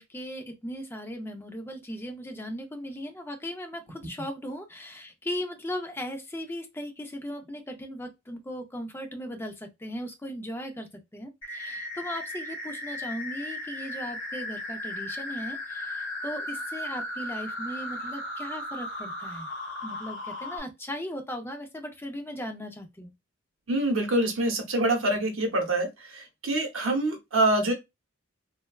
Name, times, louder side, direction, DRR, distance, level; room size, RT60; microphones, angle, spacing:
voice 1, 0.0-19.5 19.8-23.1, equal, 10° left, 0.4 m, -37 dB
sound 1, 11.4-20.6, left 1 dB, 65° left, 1.2 m, -36 dB
voice 2, 23.7-27.7, right 1 dB, 75° right, 0.8 m, -25 dB
3.2 x 2.2 x 2.3 m
head